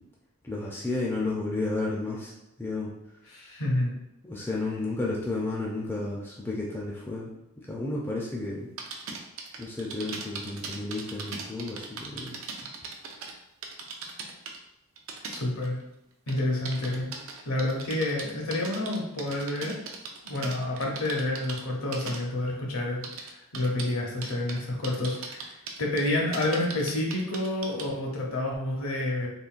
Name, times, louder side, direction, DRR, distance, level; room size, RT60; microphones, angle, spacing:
voice 1, 0.4-2.3 2.6-2.9 4.2-7.3 7.7-8.7 9.6-12.4, left 2 dB, 10° left, -4 dB, 0.4 m, -32 dB
voice 2, 3.3-3.9 15.2-15.8 16.3-17.1 17.4-19.7 20.2-29.3, left 1 dB, 70° left, -1 dB, 0.8 m, -29 dB
sound 1, 8.8-13.3 13.6-14.6 15.0-15.8 16.3-21.6 21.9-22.2 23.0-23.9 24.2-24.6 24.8-27.9, right 5 dB, 65° right, 0.4 m, -38 dB
3.8 x 2.1 x 2.4 m, 0.91 s
head